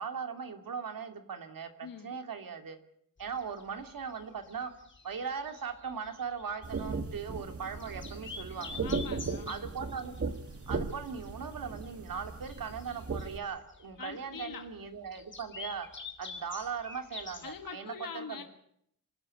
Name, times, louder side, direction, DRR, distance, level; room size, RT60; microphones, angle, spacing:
voice 1, 0.0-2.8 3.2-4.7 5.0-8.8 9.5-10.2 10.7-15.9 16.2-18.4, right 6 dB, 75° right, 7 dB, 2.7 m, -39 dB
voice 2, 1.8-2.2 8.8-9.8 14.0-14.7 17.4-18.4, left 6 dB, 80° left, 6 dB, 1.7 m, -43 dB
sound 1, 3.2-17.7, left 4 dB, 35° left, 2.6 m, -48 dB
sound 2, 6.6-13.4, right 4 dB, 40° right, 1.8 m, -37 dB
26.5 x 12.5 x 9.8 m, 0.71 s
wide cardioid pair, 135°, 34 cm